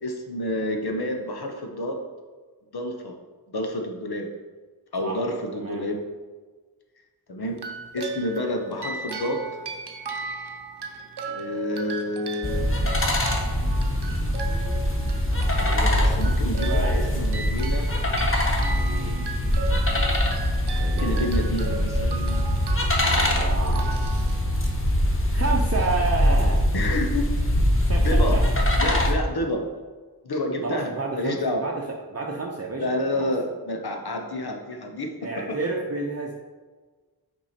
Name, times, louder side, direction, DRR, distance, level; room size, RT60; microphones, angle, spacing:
voice 1, 0.0-2.0 2.7-3.1 3.5-4.3 4.9-6.0 7.3-7.6 7.9-9.5 11.2-12.7 15.5-17.9 19.5-20.0 20.4-20.5 20.8-22.6 26.7-27.3 28.0-28.4 28.8-29.6 30.2-31.6 32.7-35.6, left 1 dB, 65° left, 3 dB, 1.0 m, -29 dB
voice 2, 5.5-5.9 16.0-16.3 16.6-17.1 18.6-19.3 20.8-21.3 23.0-23.9 25.3-26.6 27.9-28.4 30.6-32.9 33.1-33.3 35.2-36.3, right 3 dB, 40° right, -1 dB, 0.7 m, -30 dB
sound 1, 7.6-25.0, right 3 dB, 75° right, 0.8 m, -37 dB
sound 2, 12.4-29.1, left 1 dB, 30° left, 1.0 m, -23 dB
6.0 x 4.7 x 4.3 m, 1.4 s
wide cardioid pair, 55°, 40 cm